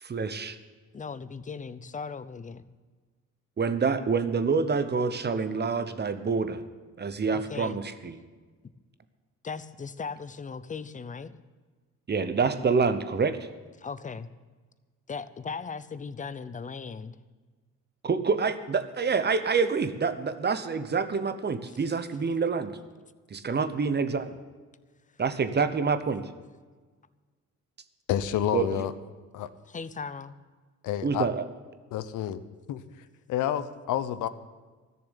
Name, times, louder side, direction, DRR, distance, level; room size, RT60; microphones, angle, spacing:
voice 1, 0.0-0.6 3.6-6.6 7.0-8.1 12.1-13.5 18.0-22.7 23.3-24.4 25.2-26.3 28.5-28.8 31.0-31.4, right 5 dB, 35° right, 11 dB, 1.0 m, -27 dB
voice 2, 0.9-2.7 7.3-7.8 9.4-11.4 13.8-14.3 15.1-17.2 29.7-30.3, left 5 dB, 25° left, 15 dB, 0.7 m, -38 dB
voice 3, 28.1-28.9 29.3-29.5 30.8-31.3 31.9-32.4 32.7-32.8 33.3-34.3, left 11 dB, 85° left, 13 dB, 0.8 m, -29 dB
13.5 x 6.9 x 10.0 m, 1.4 s
cardioid pair, 90°, 30 cm